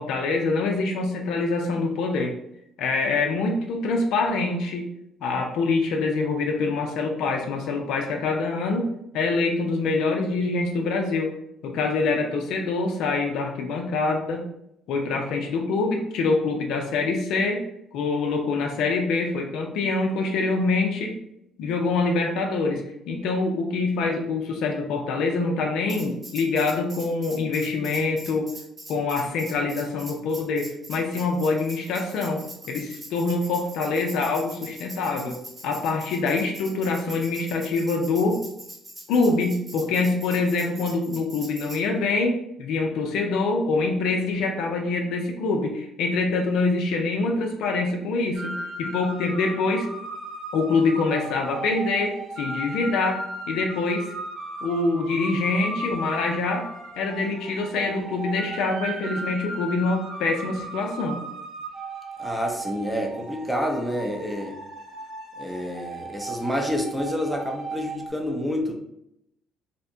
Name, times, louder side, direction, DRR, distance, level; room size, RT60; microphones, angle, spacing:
voice 1, 0.0-2.3 2.8-4.9 5.2-11.3 11.6-14.5 14.9-17.6 17.9-21.2 21.6-28.5 28.9-35.4 35.6-38.4 39.1-49.9 50.5-53.2 53.5-54.1 54.6-56.7 57.0-61.2, left 3 dB, 75° left, 2 dB, 0.4 m, -25 dB
Tambourine, 25.9-41.8, right 1 dB, 30° right, 1.1 m, -42 dB
sound 1, 48.3-68.1, right 2 dB, 55° right, 0.6 m, -36 dB
voice 2, 62.2-64.6 65.4-68.7, equal, 5° right, 1 dB, 0.6 m, -28 dB
2.7 x 2.1 x 2.6 m, 0.78 s
supercardioid pair, 70°, 0 cm